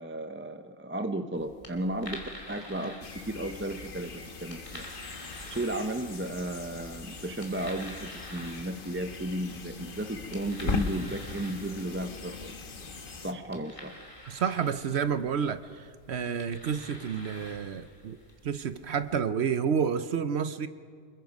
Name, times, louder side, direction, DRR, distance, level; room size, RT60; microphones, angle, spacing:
voice 1, 0.0-4.9 5.5-12.6 13.2-14.0, right 1 dB, 15° right, 7 dB, 0.5 m, -34 dB
sound 1, 1.3-19.2, left 1 dB, 25° left, 2.6 m, -49 dB
sound 2, 3.0-13.3, left 4 dB, 45° left, 1.3 m, -40 dB
voice 2, 14.2-18.2 18.4-20.7, right 7 dB, 60° right, 12 dB, 1.0 m, -30 dB
26.5 x 21.5 x 5.3 m, 2.1 s
omnidirectional pair, 1.3 m